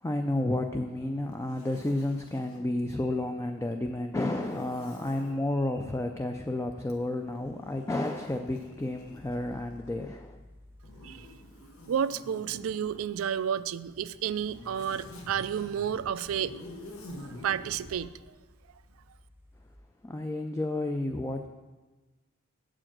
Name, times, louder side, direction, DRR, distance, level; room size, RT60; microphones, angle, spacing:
voice 1, 0.0-10.4 20.0-21.5, left 1 dB, 15° left, 5 dB, 0.4 m, -31 dB
Zipper (clothing), 1.3-2.7 4.3-5.4 6.8-10.1 10.8-13.1 14.0-18.0, left 1 dB, 80° left, 1.2 m, -48 dB
sound 1, 7.1-19.8, left 1 dB, 10° right, 0.7 m, -57 dB
voice 2, 11.9-16.5 17.2-18.1, right 8 dB, 80° right, 15 dB, 0.3 m, -31 dB
8.5 x 5.0 x 7.3 m, 1.2 s
head